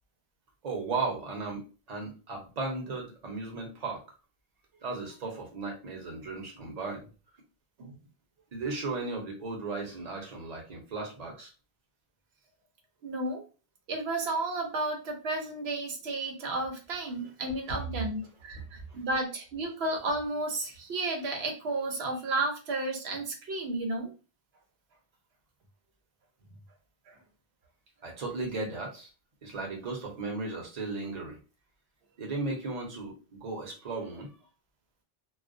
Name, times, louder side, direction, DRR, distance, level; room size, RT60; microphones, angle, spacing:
voice 1, 0.6-4.0 4.8-7.1 8.5-11.5 17.7-17.8 18.5-19.0 28.0-29.1 29.4-31.4 32.2-34.4, right 3 dB, 45° right, 0 dB, 0.8 m, -36 dB
voice 2, 13.0-13.4 13.9-24.1 27.1-27.2, right 2 dB, 90° right, 2 dB, 0.9 m, -32 dB
2.3 x 2.1 x 2.5 m, 0.33 s
omnidirectional pair, 1.0 m